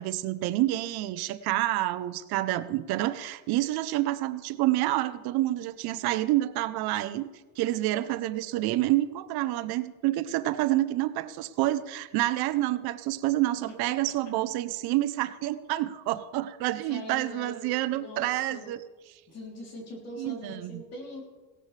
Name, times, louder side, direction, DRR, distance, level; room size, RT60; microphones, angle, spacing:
voice 1, 0.0-7.3 7.6-18.8 20.2-20.8, right 15 dB, 80° right, 12 dB, 0.7 m, -28 dB
voice 2, 16.9-17.6 17.9-18.7 19.3-21.2, left 1 dB, 45° left, -1 dB, 3.3 m, -42 dB
17.5 x 13.0 x 3.3 m, 1.3 s
cardioid pair, 165°, 37 cm